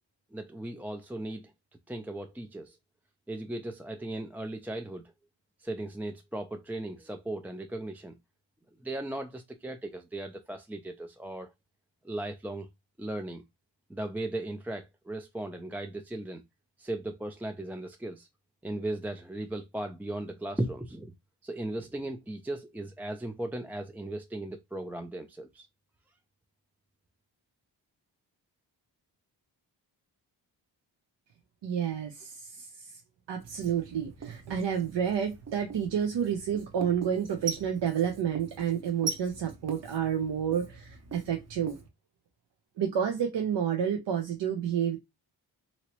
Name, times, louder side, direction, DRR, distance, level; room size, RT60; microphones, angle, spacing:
voice 1, 0.3-1.5 1.9-2.8 3.3-5.1 5.6-8.2 8.8-11.5 12.0-12.7 13.0-13.4 13.9-16.4 16.8-18.3 18.6-21.1 21.4-25.7, right 1 dB, 5° right, 0.4 m, -37 dB
voice 2, 31.6-33.0 33.3-41.8 42.8-45.0, right 8 dB, 65° right, 0.7 m, -30 dB
Writing, 33.4-41.9, right 4 dB, 35° right, 0.9 m, -42 dB
2.9 x 2.8 x 2.9 m
supercardioid pair, 50°, 45 cm